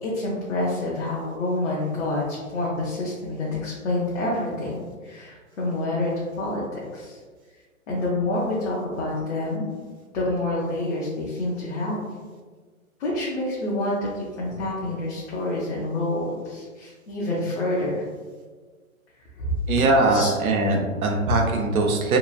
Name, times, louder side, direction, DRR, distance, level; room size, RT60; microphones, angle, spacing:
voice 1, 0.0-6.1 6.4-7.2 7.9-9.7 10.1-12.0 13.0-18.0 19.3-19.5 20.1-20.3, left 2 dB, 55° left, -5 dB, 0.7 m, -27 dB
voice 2, 19.7-22.2, right 2 dB, 80° right, 2 dB, 0.7 m, -21 dB
2.9 x 2.4 x 2.3 m, 1.5 s
hypercardioid pair, 150°, 42 cm